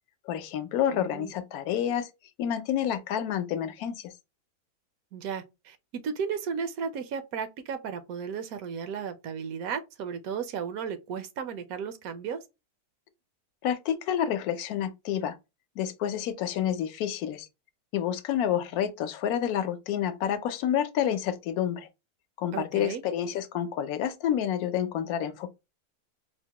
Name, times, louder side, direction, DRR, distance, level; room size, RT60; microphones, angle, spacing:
voice 1, 0.3-2.1 2.4-4.1 13.6-15.3 15.8-17.5 17.9-21.9 22.4-25.5, left 10 dB, 75° left, 1.0 m, -29 dB
voice 2, 0.9-1.3 5.1-5.8 6.0-12.4 22.5-23.0, right 6 dB, 75° right, 1.0 m, -34 dB
4.5 x 2.1 x 2.8 m
omnidirectional pair, 1.6 m